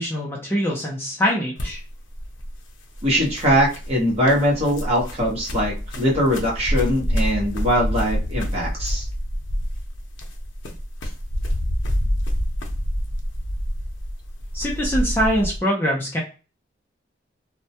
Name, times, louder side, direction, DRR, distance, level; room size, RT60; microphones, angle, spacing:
voice 1, 0.0-1.8 14.5-16.2, equal, 10° left, -3 dB, 0.4 m, -23 dB
sound 1, 1.6-15.6, equal, 80° left, 0.6 m, -27 dB
voice 2, 3.0-9.1, equal, 30° right, -4 dB, 0.8 m, -21 dB
2.2 x 2.1 x 2.7 m, 0.34 s
head